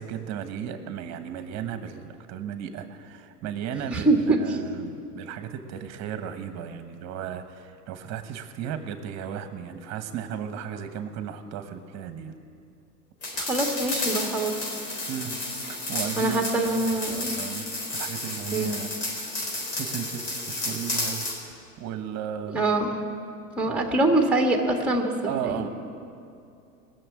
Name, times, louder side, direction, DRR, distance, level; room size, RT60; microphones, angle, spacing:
voice 1, 0.0-12.3 15.1-15.4 15.7-16.4 17.1-17.6 17.9-18.9 19.7-21.3 21.8-22.6 23.6-23.8 24.1-24.2 25.3-25.7, right 9 dB, 35° right, 8 dB, 1.3 m, -35 dB
voice 2, 3.9-4.4 13.3-14.5 16.2-17.4 18.5-18.7 22.5-22.9 23.6-25.1 25.4-25.7, right 2 dB, 5° right, 2 dB, 1.7 m, -24 dB
sound 1, 13.2-21.4, left 2 dB, 50° left, 4.2 m, -32 dB
19.0 x 7.0 x 8.5 m, 2.5 s
hypercardioid pair, 115°, 47 cm